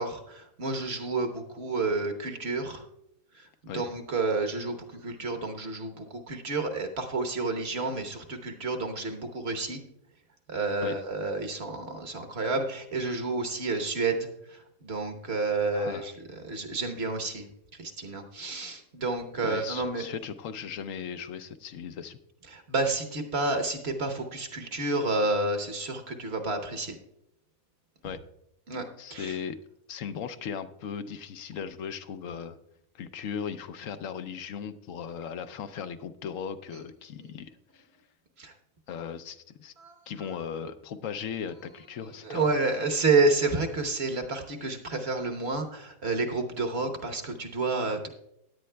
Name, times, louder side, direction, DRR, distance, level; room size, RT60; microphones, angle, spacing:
voice 1, 0.0-2.8 3.3-9.8 10.5-20.1 22.5-27.0 28.7-29.4 36.7-36.8 37.2-37.3 38.4-38.5 39.8-40.0 42.2-48.1, right 3 dB, 50° right, 6 dB, 1.2 m, -30 dB
voice 2, 15.7-16.1 19.4-22.2 28.0-28.2 29.0-29.6 29.9-32.6 32.9-37.9 38.9-39.7 40.1-42.5, left 7 dB, 75° left, 10 dB, 1.0 m, -37 dB
16.0 x 10.5 x 2.2 m, 0.79 s
omnidirectional pair, 1.4 m